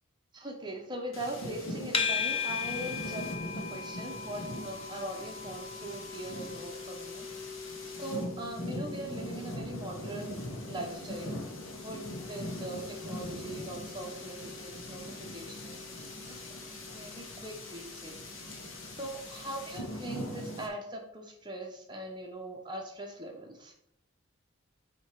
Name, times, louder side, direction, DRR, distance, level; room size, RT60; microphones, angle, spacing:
voice 1, 0.3-7.6 8.0-11.4 11.8-16.4 16.9-18.3 19.0-23.7, right 1 dB, 20° right, 2 dB, 0.8 m, -41 dB
sound 1, 1.1-20.7, left 1 dB, 65° left, 1.2 m, -41 dB
sound 2, 1.9-19.1, left 6 dB, 25° left, 0.6 m, -40 dB
8.6 x 2.9 x 4.6 m, 0.76 s
head